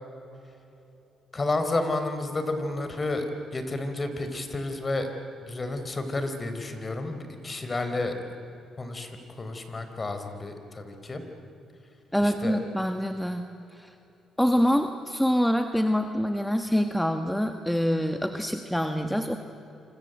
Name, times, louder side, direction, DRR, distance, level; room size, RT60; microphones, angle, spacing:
voice 1, 1.3-5.1 5.4-8.1 8.8-9.1 9.4-11.2 12.2-12.6, left 2 dB, 30° left, 7 dB, 4.1 m, -31 dB
voice 2, 12.1-13.5 13.7-13.9 14.4-19.4, equal, 5° left, 6 dB, 1.4 m, -25 dB
27.5 x 26.5 x 8.0 m, 2.9 s
cardioid pair, 90°, 0 cm